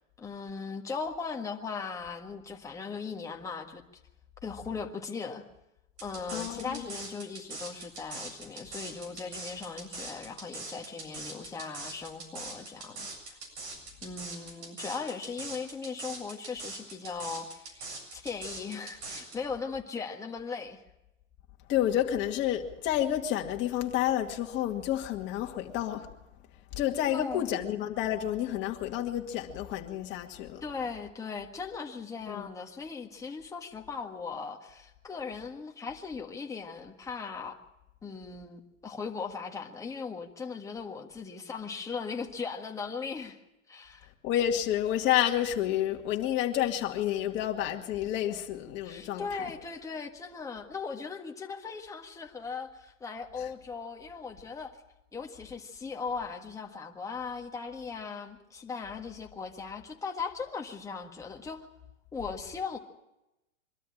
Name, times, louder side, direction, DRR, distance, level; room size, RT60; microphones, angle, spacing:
voice 1, 0.2-3.8 4.4-5.4 6.0-13.4 14.0-17.8 18.1-20.8 27.1-27.7 30.6-37.6 38.0-43.4 43.7-44.1 48.8-54.8 55.1-61.7 62.1-62.8, left 5 dB, 10° left, 1.6 m, -38 dB
sound 1, 6.0-19.4, right 3 dB, 60° right, 7.7 m, -41 dB
voice 2, 6.3-6.9 21.7-26.1 26.7-30.6 32.3-32.5 44.2-49.5 53.4-53.5, left 11 dB, 30° left, 2.2 m, -30 dB
23.5 x 13.0 x 8.8 m
hypercardioid pair, 145°, 38 cm